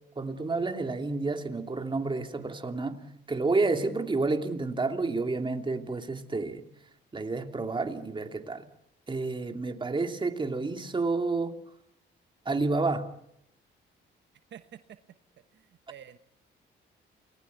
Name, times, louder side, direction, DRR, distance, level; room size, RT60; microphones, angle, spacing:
voice 1, 0.2-3.0 3.3-6.6 7.1-8.6 9.1-11.5 12.4-13.1, right 3 dB, 25° right, 2.8 m, -30 dB
voice 2, 15.5-16.2, right 9 dB, 60° right, 1.1 m, -48 dB
29.0 x 19.5 x 8.3 m
cardioid pair, 90°, 20 cm